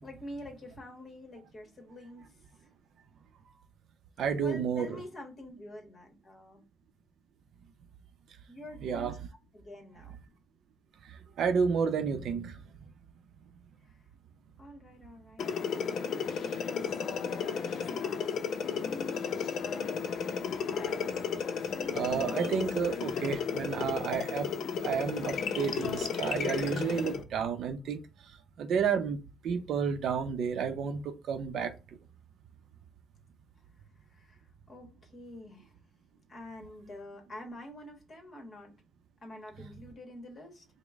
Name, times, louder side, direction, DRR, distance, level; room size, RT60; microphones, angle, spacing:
voice 1, 0.0-2.5 4.4-6.6 8.5-9.2 9.5-10.1 13.8-14.0 14.6-19.2 34.1-35.8 36.3-38.7 39.2-40.7, left 1 dB, 30° left, 1.4 m, -47 dB
voice 2, 4.2-5.0 8.8-9.1 11.4-12.6 21.9-24.5 24.8-28.0 28.6-31.7, right 6 dB, 60° right, 0.6 m, -31 dB
sound 1, 15.4-27.2, left 6 dB, 55° left, 0.6 m, -33 dB
5.1 x 2.1 x 3.5 m
cardioid pair, 140°, 0 cm